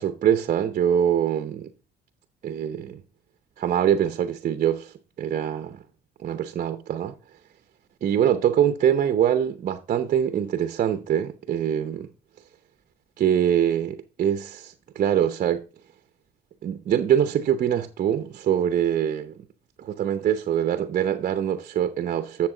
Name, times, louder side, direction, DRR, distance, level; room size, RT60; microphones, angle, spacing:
voice 1, 0.0-1.7 2.4-3.0 3.6-5.8 6.2-7.1 8.0-12.1 13.2-15.7 16.6-19.3 19.8-22.5, right 9 dB, 50° right, 0.8 m, -24 dB
11.5 x 7.3 x 3.8 m
cardioid pair, 110°, 17 cm